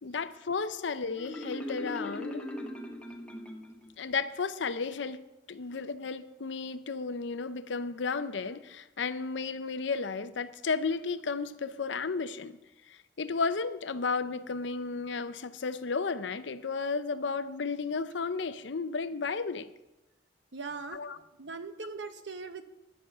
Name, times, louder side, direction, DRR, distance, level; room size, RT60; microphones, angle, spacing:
voice 1, 0.0-2.4 4.0-12.6 12.9-19.7 20.9-21.2, left 4 dB, 80° left, 0.6 m, -33 dB
Marimba xylophone, 1.2-3.9, left 1 dB, 5° left, 1.0 m, -39 dB
voice 2, 20.5-21.0 21.4-22.6, right 4 dB, 75° right, 0.9 m, -40 dB
10.5 x 7.8 x 6.6 m
head